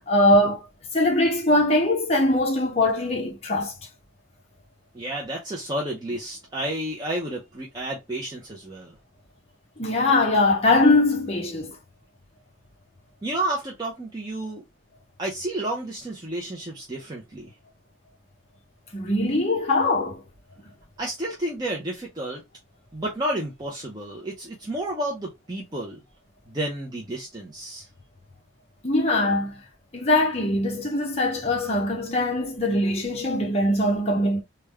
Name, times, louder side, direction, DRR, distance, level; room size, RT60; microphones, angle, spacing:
voice 1, 0.1-0.7 0.9-3.7 9.8-11.8 18.9-20.2 28.8-29.5 29.9-34.4, left 2 dB, 30° left, 0.9 m, -22 dB
voice 2, 4.9-9.0 13.2-14.6 15.2-17.5 21.0-22.4 22.9-26.0 26.5-27.9, right 1 dB, 20° right, 0.7 m, -31 dB
3.5 x 2.3 x 3.0 m
head